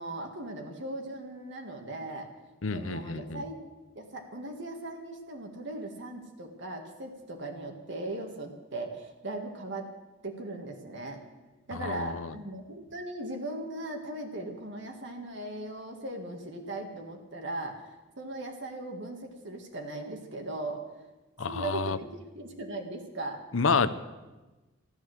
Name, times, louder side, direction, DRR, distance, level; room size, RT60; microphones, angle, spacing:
voice 1, 0.0-2.3 2.7-3.6 4.0-9.9 10.2-11.2 11.7-17.9 18.2-20.8 21.4-23.4, right 2 dB, 60° right, 2 dB, 1.9 m, -38 dB
voice 2, 2.6-3.4 11.7-12.3 21.4-22.0 23.5-23.9, left 4 dB, 75° left, 14 dB, 0.7 m, -29 dB
14.0 x 12.0 x 7.9 m, 1.1 s
head